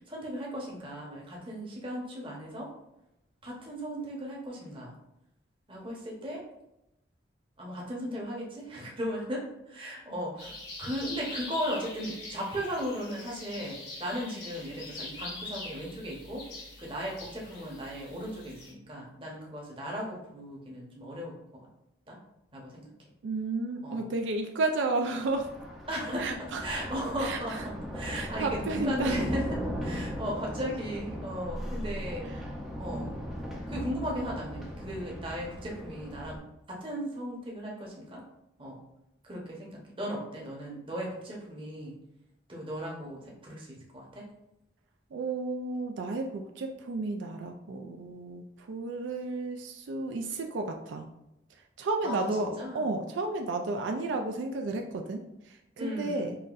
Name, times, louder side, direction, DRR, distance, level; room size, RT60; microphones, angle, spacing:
voice 1, 0.1-2.7 3.4-5.0 5.7-6.4 7.6-10.5 10.8-16.5 16.8-21.4 22.1-22.2 22.5-22.9 23.8-24.1 25.9-32.3 32.8-33.2 33.7-36.4 36.7-38.2 38.6-38.8 39.2-41.9 42.5-44.2 52.0-52.9 55.8-56.4, equal, 30° right, -2 dB, 0.9 m, -36 dB
sound 1, 10.4-18.7, left 2 dB, 70° left, 1.3 m, -43 dB
voice 2, 23.2-25.5 26.2-26.6 27.2-27.6 28.1-29.2 45.1-51.1 51.8-56.4, right 3 dB, 80° right, 4 dB, 0.4 m, -32 dB
Thunder, 25.2-36.4, equal, ahead, 0.5 m, -37 dB
5.6 x 2.6 x 2.4 m, 0.87 s
head